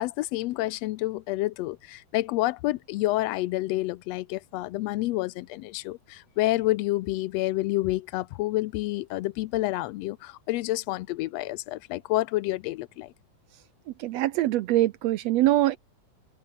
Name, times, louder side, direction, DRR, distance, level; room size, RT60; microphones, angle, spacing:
voice 1, 0.0-13.1, left 18 dB, 80° left, 1.5 m, -29 dB
voice 2, 14.0-15.8, right 15 dB, 75° right, 1.6 m, -23 dB
omnidirectional pair, 3.5 m